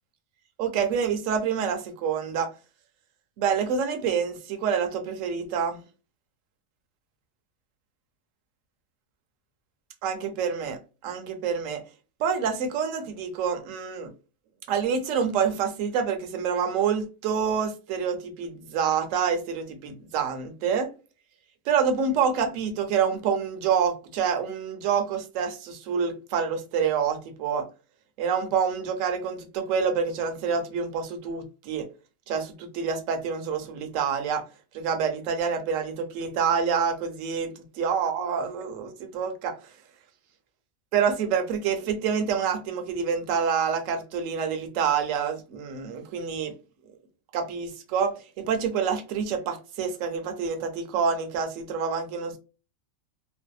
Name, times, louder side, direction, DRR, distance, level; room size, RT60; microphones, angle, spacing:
voice 1, 0.6-2.5 3.4-5.8 10.0-11.8 12.2-14.1 14.7-20.9 21.7-27.7 28.2-31.9 32.3-34.4 34.7-39.5 40.9-46.5 47.3-52.4, right 6 dB, 75° right, 0.9 m, -27 dB
2.7 x 2.0 x 2.2 m
omnidirectional pair, 1.4 m